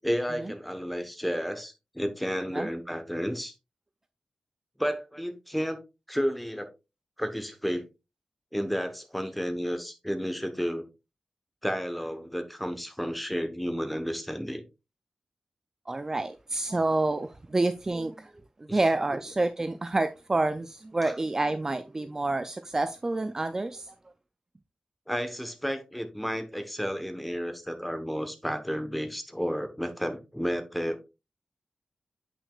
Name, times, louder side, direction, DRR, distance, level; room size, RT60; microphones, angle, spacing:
voice 1, 0.0-3.5 4.8-5.8 6.1-6.7 7.2-7.9 8.5-10.9 11.6-14.6 18.7-18.8 21.0-21.1 25.1-31.1, equal, ahead, 1.1 m, -32 dB
voice 2, 15.9-18.3 18.7-23.9, right 2 dB, 25° right, 0.4 m, -28 dB
8.3 x 6.0 x 2.4 m
wide cardioid pair, 130°, 2 cm